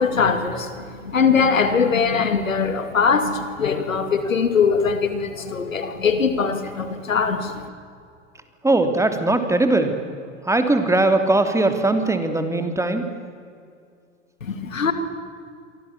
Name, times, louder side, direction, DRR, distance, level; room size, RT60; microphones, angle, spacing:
voice 1, 0.0-7.7 14.4-14.9, left 5 dB, 85° left, 9 dB, 2.6 m, -21 dB
voice 2, 8.6-10.0 10.5-13.0, right 2 dB, 5° right, 7 dB, 3.0 m, -20 dB
28.5 x 24.0 x 7.4 m, 2.3 s
figure-of-eight pair, 85°, 39 cm